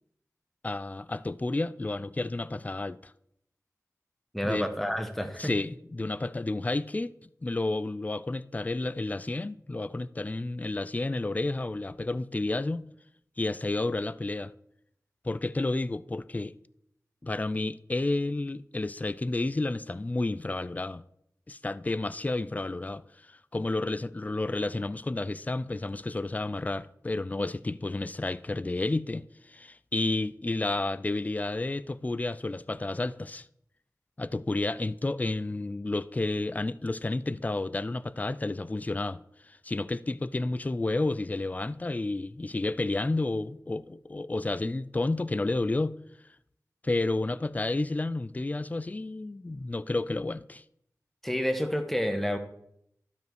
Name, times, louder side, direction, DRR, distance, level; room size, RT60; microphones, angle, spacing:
voice 1, 0.6-3.1 4.4-4.7 5.4-12.9 13.4-14.5 15.2-16.5 17.2-21.0 21.5-33.5 34.2-46.0 46.8-50.6, left 2 dB, 25° left, 0.3 m, -31 dB
voice 2, 4.3-5.5 51.2-52.4, equal, 5° left, 1.1 m, -29 dB
12.0 x 5.1 x 4.6 m
wide cardioid pair, 60°, 6 cm